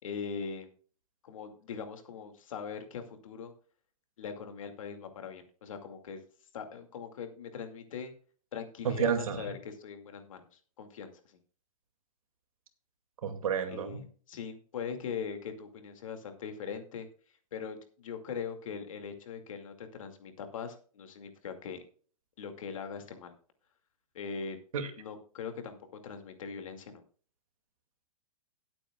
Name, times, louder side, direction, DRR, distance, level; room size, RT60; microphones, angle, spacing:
voice 1, 0.0-0.7 1.2-3.5 4.2-6.2 6.5-8.1 8.5-11.4 13.7-17.1 17.5-21.8 22.4-23.3 24.1-24.6 25.0-25.8 26.0-27.0, left 6 dB, 60° left, 6 dB, 2.3 m, -41 dB
voice 2, 8.8-9.5 13.2-14.0 24.7-24.9, right 7 dB, 65° right, 7 dB, 2.3 m, -30 dB
18.0 x 8.8 x 2.3 m, 0.42 s
hypercardioid pair, 175°, 19 cm